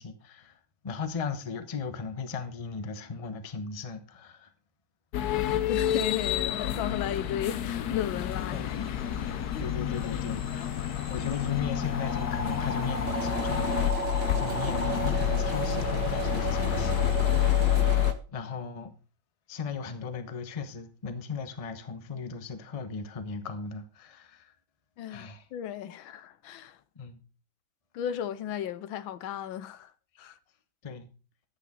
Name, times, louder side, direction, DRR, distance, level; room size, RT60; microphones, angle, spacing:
voice 1, 0.0-4.5 8.5-8.7 9.6-17.7 18.3-18.9 19.5-24.5 25.1-25.5 26.9-27.2 30.1-30.3 30.8-31.1, left 5 dB, 30° left, 0.7 m, -37 dB
sound 1, 5.1-18.1, left 12 dB, 65° left, 1.0 m, -29 dB
voice 2, 5.7-8.9 9.3-9.7 25.0-26.8 27.9-29.9 30.2-30.3, left 10 dB, 80° left, 1.4 m, -35 dB
sound 2, 8.3-17.8, left 2 dB, 10° left, 1.6 m, -38 dB
sound 3, 13.1-18.1, right 9 dB, 70° right, 1.9 m, -35 dB
11.0 x 8.5 x 4.1 m
omnidirectional pair, 2.2 m